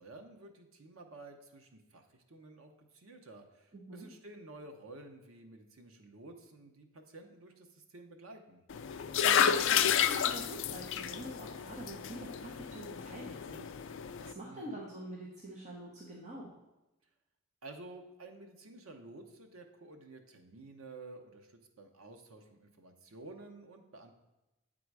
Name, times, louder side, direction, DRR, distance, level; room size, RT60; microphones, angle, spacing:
voice 1, 0.0-8.6 14.4-14.8 17.6-24.1, right 2 dB, 90° right, 5 dB, 0.9 m, -52 dB
voice 2, 3.7-4.1 9.1-16.5, right 1 dB, 35° right, -4 dB, 0.9 m, -46 dB
sound 1, 8.7-14.3, left 8 dB, 65° left, 0.4 m, -31 dB
8.5 x 3.9 x 4.7 m, 0.97 s
head